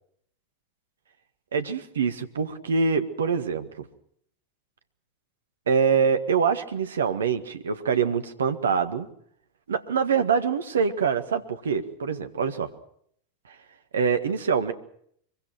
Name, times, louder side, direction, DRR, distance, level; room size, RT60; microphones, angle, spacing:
voice 1, 1.5-3.8 5.7-9.1 9.7-12.7 13.9-14.7, right 6 dB, 65° right, 9 dB, 1.8 m, -25 dB
24.5 x 23.5 x 6.0 m, 0.66 s
figure-of-eight pair, 90°, 0 cm